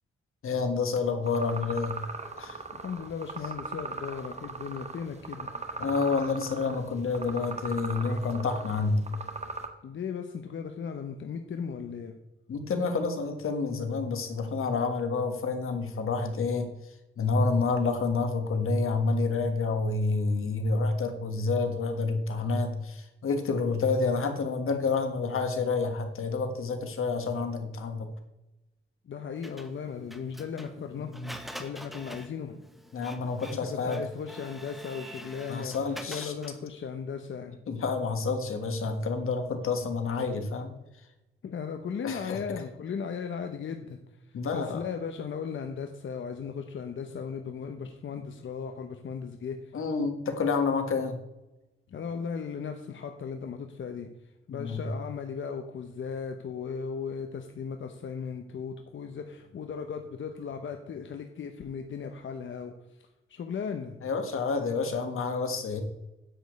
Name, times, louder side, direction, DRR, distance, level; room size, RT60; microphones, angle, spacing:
voice 1, 0.4-2.0 2.4-2.6 5.8-9.0 12.5-16.7 17.2-28.1 31.1-31.3 32.9-34.0 35.5-36.3 37.7-40.7 42.0-42.4 44.3-44.8 49.7-51.2 54.6-54.8 64.0-65.8, left 4 dB, 85° left, 6 dB, 1.7 m, -29 dB
sound 1, 1.3-9.7, right 4 dB, 30° right, 1.3 m, -39 dB
voice 2, 2.7-5.5 9.8-12.1 29.0-31.1 31.6-32.6 33.5-37.6 41.4-49.7 51.9-54.1 54.5-64.0, left 6 dB, 65° left, 5 dB, 0.9 m, -37 dB
Printer, 29.4-36.7, equal, ahead, 1.0 m, -46 dB
9.9 x 5.2 x 8.2 m, 0.96 s
wide cardioid pair, 145°, 21 cm